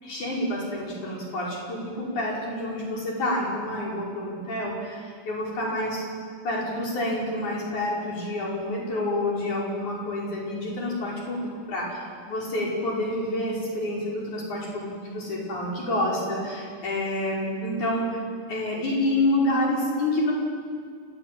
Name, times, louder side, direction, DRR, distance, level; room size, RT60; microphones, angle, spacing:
voice 1, 0.0-6.1 6.4-18.2 18.5-20.3, left 1 dB, 40° left, -4 dB, 6.5 m, -28 dB
29.0 x 14.5 x 9.1 m, 2.1 s
omnidirectional pair, 5.7 m